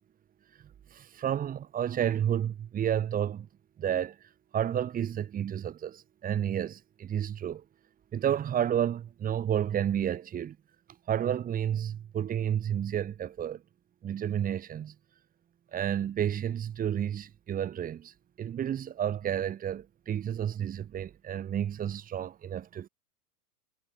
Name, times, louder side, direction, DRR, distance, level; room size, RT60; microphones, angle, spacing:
voice 1, 0.9-3.5 3.8-4.2 4.5-7.6 8.1-10.6 11.1-13.6 14.0-14.9 15.7-22.9, right 9 dB, 20° right, 6.7 m, -31 dB
supercardioid pair, 160°, 47 cm